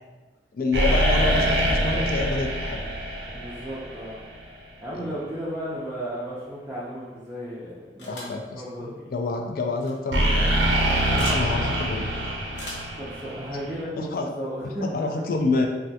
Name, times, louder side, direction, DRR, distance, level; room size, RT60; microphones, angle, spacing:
voice 1, 0.5-2.9 4.9-5.2 8.1-10.8 11.1-12.1 14.0-14.3 14.6-15.7, left 3 dB, 55° left, 3 dB, 0.3 m, -28 dB
sound 1, 0.7-4.4 10.1-13.8, right 1 dB, 80° right, 0.5 m, -24 dB
voice 2, 3.3-4.3 4.8-9.0 12.5-15.3, equal, 10° right, -9 dB, 0.4 m, -34 dB
sound 2, 8.0-8.4 9.7-9.9 11.2-11.4 12.5-13.0, left 1 dB, 85° left, 0.8 m, -38 dB
3.3 x 2.2 x 2.7 m, 1.2 s
head